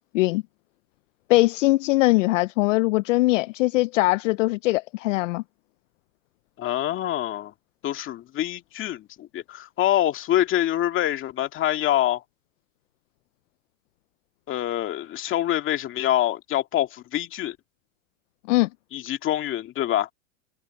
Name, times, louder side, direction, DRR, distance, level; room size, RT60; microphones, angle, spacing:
voice 1, 1.3-5.4 18.5-18.7, left 20 dB, 60° left, 0.6 m, -21 dB
voice 2, 6.6-7.5 7.8-12.2 14.5-17.6 18.9-20.1, left 13 dB, 30° left, 2.2 m, -25 dB
supercardioid pair, 140°, 43 cm